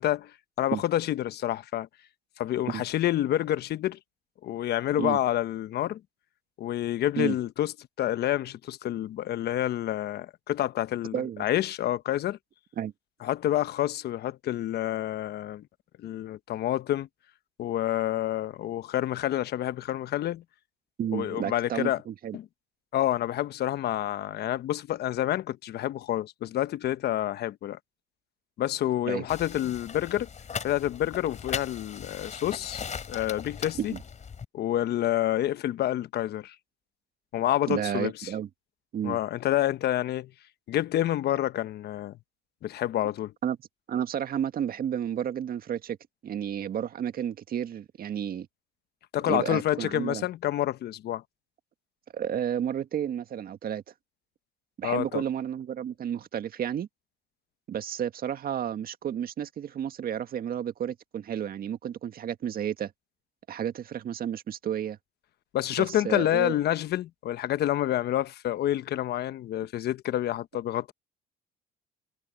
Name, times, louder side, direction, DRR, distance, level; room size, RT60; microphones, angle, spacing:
voice 1, 0.0-1.9 2.4-4.0 4.4-6.0 6.6-7.7 8.0-11.1 11.4-12.4 13.2-15.6 16.0-17.1 17.6-20.4 21.1-22.0 22.3-22.4 22.9-27.8 28.6-30.3 30.6-32.8 33.1-33.9 34.5-36.5 37.3-38.3 39.0-40.3 40.7-42.2 42.6-43.3 49.1-51.2 54.8-55.2 65.5-70.9, left 13 dB, 65° left, 1.1 m, -28 dB
voice 2, 11.1-11.5 12.8-12.9 21.0-22.4 29.1-29.3 33.8-34.0 37.7-38.5 38.9-39.2 43.4-43.6 43.9-46.0 46.2-48.5 49.3-50.3 52.1-53.8 54.8-56.9 57.7-62.9 63.5-65.0 65.8-66.6, right 9 dB, 55° right, 1.9 m, -31 dB
sound 1, 29.3-34.5, left 6 dB, 40° left, 3.7 m, -39 dB
supercardioid pair, 65°, 18 cm